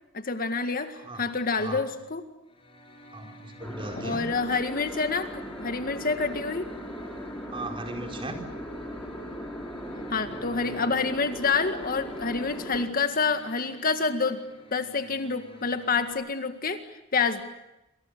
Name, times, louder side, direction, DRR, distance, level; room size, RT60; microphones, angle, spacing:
voice 1, 0.1-2.2 4.0-6.7 10.1-14.4 14.7-16.8 17.1-17.4, left 4 dB, 45° left, 8 dB, 1.9 m, -27 dB
sound 1, 2.4-16.1, right 1 dB, 30° left, 6.2 m, -50 dB
voice 2, 3.1-4.3 7.5-8.4, right 2 dB, 25° right, 3 dB, 4.9 m, -37 dB
sound 2, 3.6-12.8, equal, 10° left, 4.8 m, -39 dB
28.0 x 27.5 x 6.7 m, 0.93 s
head